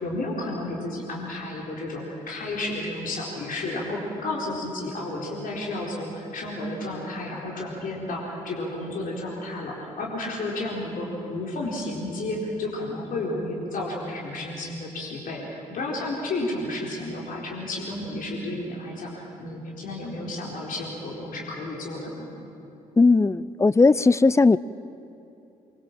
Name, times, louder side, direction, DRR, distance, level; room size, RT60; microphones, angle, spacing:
voice 1, 0.0-22.3, left 2 dB, 50° left, -2 dB, 4.4 m, -32 dB
voice 2, 23.0-24.6, left 3 dB, 15° left, 18 dB, 0.6 m, -17 dB
25.0 x 23.5 x 7.5 m, 2.7 s
figure-of-eight pair, 45°, 18 cm